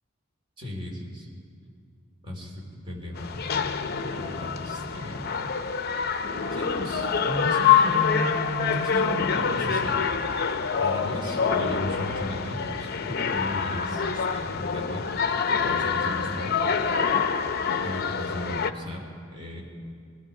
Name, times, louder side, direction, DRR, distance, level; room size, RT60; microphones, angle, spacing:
voice 1, 0.6-1.3 2.2-3.7 4.0-5.4 6.5-10.0 10.3-10.4 10.7-15.0 15.6-16.5 17.8-19.6, left 1 dB, 25° right, -2 dB, 3.0 m, -35 dB
sound 1, 3.2-18.7, left 6 dB, 50° left, 0.6 m, -26 dB
20.5 x 14.5 x 4.8 m, 2.2 s
head